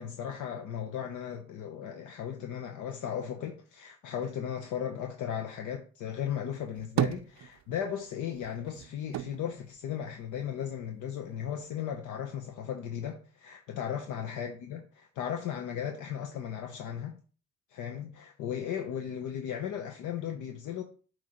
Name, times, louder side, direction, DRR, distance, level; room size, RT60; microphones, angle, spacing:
voice 1, 0.0-17.2 17.7-20.8, left 9 dB, 85° left, 0.8 m, -36 dB
sound 1, 6.5-8.0 8.3-10.7 11.1-12.0, right 13 dB, 65° right, 0.4 m, -35 dB
7.7 x 3.3 x 4.9 m
cardioid pair, 90°, 30 cm